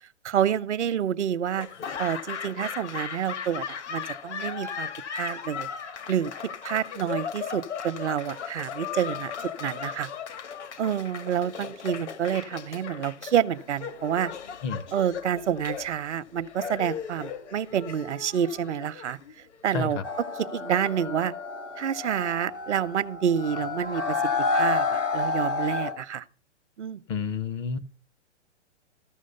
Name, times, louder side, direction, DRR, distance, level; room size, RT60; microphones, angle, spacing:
voice 1, 0.2-1.7 2.0-5.7 6.1-6.3 6.6-9.3 9.6-10.1 10.8-14.3 14.9-19.2 19.6-20.0 20.4-21.3 21.8-24.2 24.5-26.2 26.8-27.0, right 9 dB, 70° right, 0.8 m, -28 dB
Laughter / Applause, 1.6-19.7, left 7 dB, 70° left, 1.3 m, -37 dB
voice 2, 19.7-20.0 27.1-27.8, left 5 dB, 25° left, 0.5 m, -30 dB
sound 1, 20.0-25.9, left 4 dB, 85° left, 4.0 m, -29 dB
14.5 x 6.3 x 5.4 m
hypercardioid pair, 125°, 37 cm